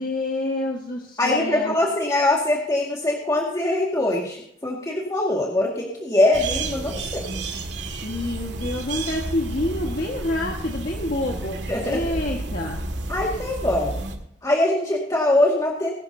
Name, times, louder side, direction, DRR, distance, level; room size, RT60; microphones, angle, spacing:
voice 1, 0.0-1.7 8.0-12.8, left 1 dB, 50° left, 0 dB, 1.6 m, -28 dB
voice 2, 1.2-7.2 11.7-12.0 13.1-14.0 14.4-15.9, left 1 dB, 20° left, -3 dB, 2.0 m, -22 dB
sound 1, 6.3-14.2, right 2 dB, 70° right, 2.1 m, -31 dB
21.0 x 12.0 x 2.8 m, 0.70 s
head